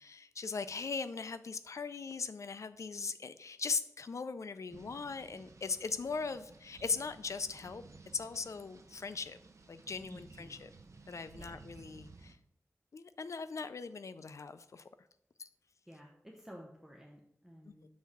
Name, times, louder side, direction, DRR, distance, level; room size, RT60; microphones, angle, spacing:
voice 1, 0.0-7.8 8.1-9.4 9.7-10.7 11.1-12.4 12.9-14.8 15.4-15.5 17.7-17.8, left 4 dB, 65° left, 12 dB, 0.4 m, -39 dB
sound 1, 4.7-12.3, right 3 dB, 70° right, 0.7 m, -56 dB
voice 2, 10.1-10.6 11.4-11.6 15.9-17.8, equal, 5° right, -2 dB, 0.9 m, -53 dB
6.5 x 3.5 x 5.6 m, 0.73 s
wide cardioid pair, 80°, 6 cm